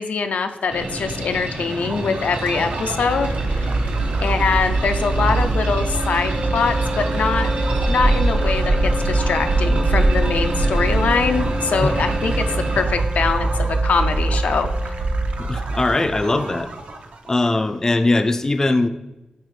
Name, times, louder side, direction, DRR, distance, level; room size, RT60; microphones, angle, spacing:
voice 1, 0.0-3.3 3.5-3.7 4.2-7.5 7.9-14.7, left 5 dB, 90° left, 7 dB, 0.4 m, -23 dB
sound 1, 0.7-12.8, right 2 dB, 90° right, 1.0 m, -30 dB
sound 2, 1.6-17.3, right 2 dB, 65° right, 0.6 m, -23 dB
Wind instrument woodwind instrument, 6.3-15.8, equal, 25° right, 0.6 m, -32 dB
voice 2, 15.4-16.7 17.3-18.9, left 2 dB, 20° left, 9 dB, 0.3 m, -20 dB
8.7 x 3.4 x 3.2 m, 1.0 s
wide cardioid pair, 125°, 2 cm